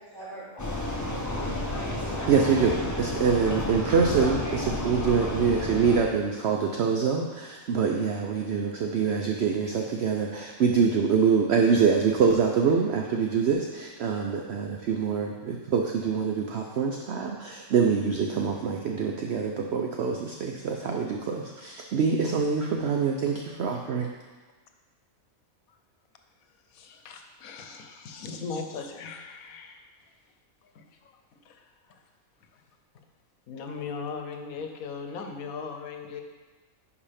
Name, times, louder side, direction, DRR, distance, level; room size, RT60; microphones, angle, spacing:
voice 1, 0.0-2.7 2.9-3.2 4.5-4.9, right 1 dB, 25° right, -10 dB, 2.8 m, -45 dB
Vehicle, 0.6-6.0, left 1 dB, 20° left, 0.6 m, -31 dB
voice 2, 2.3-24.1, right 5 dB, 60° right, 2 dB, 0.7 m, -25 dB
voice 3, 26.7-29.9 30.6-32.0 32.4-32.6 33.5-36.2, left 5 dB, 80° left, 5 dB, 1.2 m, -39 dB
11.0 x 4.8 x 3.4 m, 1.3 s
omnidirectional pair, 1.5 m